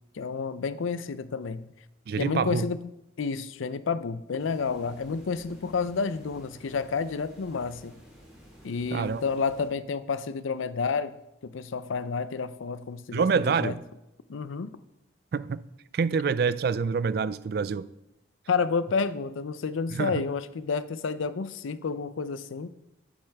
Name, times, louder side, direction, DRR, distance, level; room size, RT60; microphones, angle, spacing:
voice 1, 0.1-1.7 2.2-2.8 3.2-7.9 8.6-11.2 11.4-13.7 14.3-14.7 18.5-22.7, left 5 dB, 90° left, 0.5 m, -30 dB
voice 2, 2.1-2.7 8.9-9.2 13.1-13.8 15.3-15.6 15.9-17.9 19.9-20.2, right 5 dB, 50° right, 0.3 m, -26 dB
sound 1, 4.4-9.7, equal, 5° right, 3.1 m, -52 dB
10.0 x 8.7 x 3.4 m
head